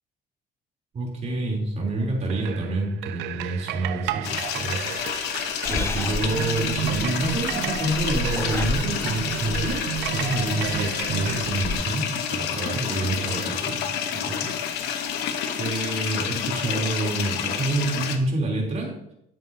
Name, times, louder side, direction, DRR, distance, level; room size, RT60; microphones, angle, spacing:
voice 1, 0.9-4.8 5.7-14.5 15.6-18.9, right 2 dB, 40° right, -1 dB, 3.4 m, -28 dB
sound 1, 2.0-11.5, right 15 dB, 85° right, 0.4 m, -33 dB
sound 2, 4.2-18.2, left 8 dB, 90° left, 1.1 m, -29 dB
Purr / Meow, 5.7-11.7, left 3 dB, 15° left, 0.5 m, -33 dB
12.0 x 8.8 x 2.8 m, 0.80 s
cardioid pair, 110°, 17 cm